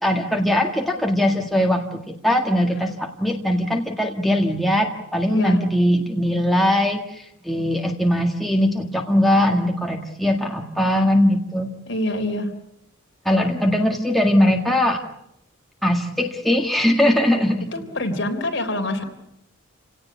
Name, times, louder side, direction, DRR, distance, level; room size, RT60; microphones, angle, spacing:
voice 1, 0.0-11.7 13.2-15.0 15.8-17.7, left 1 dB, ahead, 1 dB, 1.8 m, -20 dB
voice 2, 5.3-5.6 11.9-12.5 17.7-19.0, left 1 dB, 60° left, 4 dB, 3.6 m, -25 dB
29.5 x 17.5 x 8.2 m, 0.79 s
head